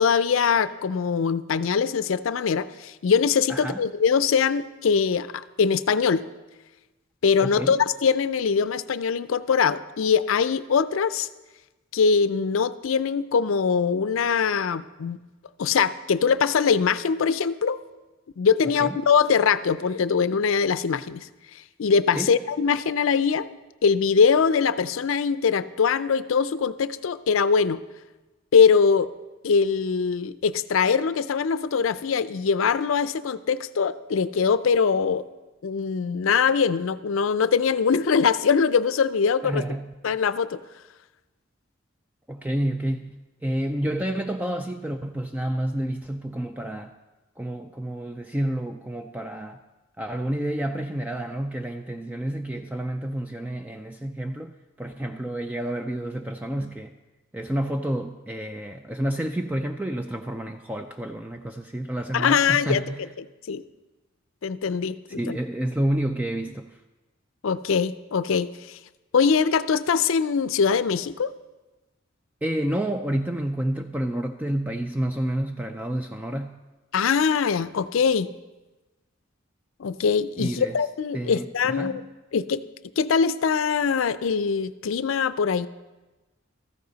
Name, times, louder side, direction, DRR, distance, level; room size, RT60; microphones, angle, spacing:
voice 1, 0.0-6.2 7.2-11.3 11.9-15.2 15.6-17.8 18.4-21.3 21.8-23.5 23.8-27.8 28.5-29.1 29.4-35.2 35.6-39.6 40.0-40.6 62.1-62.8 63.2-63.6 64.4-65.4 67.4-68.8 69.1-71.3 76.9-78.3 79.8-82.0 82.3-82.6 83.0-85.7, left 6 dB, 80° left, 15 dB, 0.4 m, -22 dB
voice 2, 3.5-3.8 7.4-7.7 18.8-19.0 22.2-22.3 39.4-39.9 42.3-46.9 47.4-49.6 50.0-56.9 57.3-63.1 65.1-66.8 72.4-76.6 80.4-80.8 81.1-82.1, right 1 dB, 10° right, 6 dB, 0.3 m, -29 dB
14.0 x 10.5 x 4.0 m, 1.1 s
head